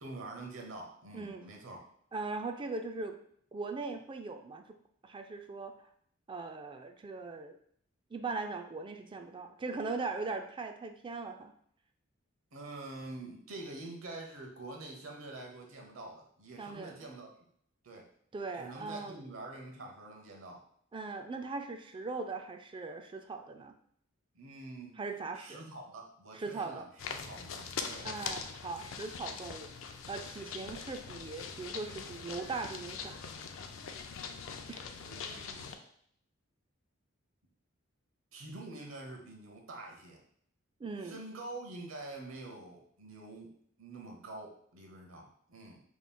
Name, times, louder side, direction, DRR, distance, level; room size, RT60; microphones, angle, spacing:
voice 1, 0.0-1.8 12.5-17.3 17.8-18.1 18.5-20.6 24.3-25.0 25.3-28.1 30.5-30.8 35.0-35.8 38.3-40.2 41.0-43.5 43.8-45.8, right 2 dB, 75° right, 1 dB, 0.9 m, -46 dB
voice 2, 1.1-1.5 2.1-3.2 3.5-4.8 5.0-5.9 6.3-7.6 8.1-11.5 16.6-17.0 18.3-19.2 20.9-23.7 25.0-25.6 26.3-26.9 28.0-33.2 34.7-34.9 40.8-41.2, right 3 dB, 25° right, 6 dB, 0.3 m, -40 dB
sound 1, 27.0-35.7, left 5 dB, 70° left, 0.4 m, -42 dB
5.3 x 3.1 x 2.2 m, 0.66 s
head